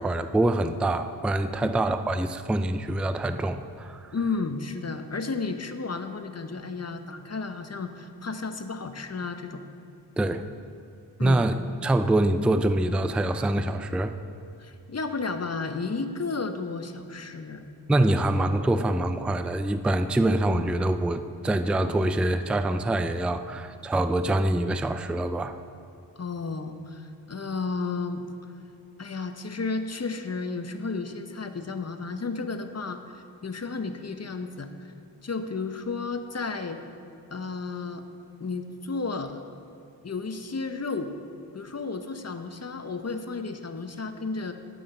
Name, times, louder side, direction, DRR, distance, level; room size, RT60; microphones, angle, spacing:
voice 1, 0.0-4.0 10.2-10.5 11.2-14.1 17.9-25.6, right 1 dB, 5° right, 10 dB, 0.4 m, -25 dB
voice 2, 4.1-9.6 11.2-11.5 14.6-17.6 23.6-23.7 26.2-28.3 29.0-34.9 35.2-36.8 37.3-38.0 38.4-39.5 40.0-41.2 41.5-44.5, left 4 dB, 35° left, 8 dB, 0.8 m, -33 dB
8.7 x 7.9 x 5.4 m, 2.7 s
cardioid pair, 50°, 44 cm